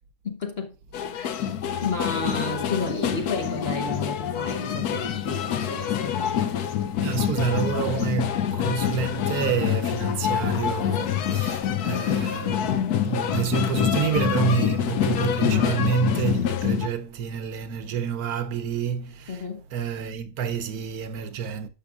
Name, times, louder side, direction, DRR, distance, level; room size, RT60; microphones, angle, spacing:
voice 1, 0.2-0.7 1.1-1.3 1.8-6.6 15.5-15.8 19.3-19.6, left 3 dB, 45° left, 1.0 m, -32 dB
sound 1, 0.9-16.9, left 9 dB, 75° left, 1.1 m, -26 dB
voice 2, 7.0-21.7, right 7 dB, 70° right, 1.1 m, -28 dB
11.5 x 6.7 x 2.4 m
omnidirectional pair, 1.7 m